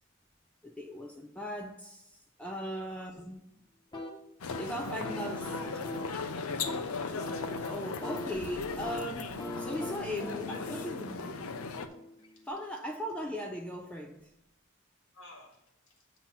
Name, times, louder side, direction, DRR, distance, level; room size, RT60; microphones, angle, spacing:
voice 1, 0.6-3.5 4.6-5.8 7.7-11.3 12.4-14.3, equal, 5° left, 0.4 m, -38 dB
voice 2, 2.6-3.1 5.0-5.2 10.3-11.2 12.3-12.4 15.1-16.1, left 2 dB, 65° left, 1.6 m, -53 dB
sound 1, 3.9-12.5, left 1 dB, 20° left, 0.8 m, -42 dB
sound 2, 4.4-11.9, left 4 dB, 85° left, 0.6 m, -38 dB
7.6 x 2.9 x 5.7 m
head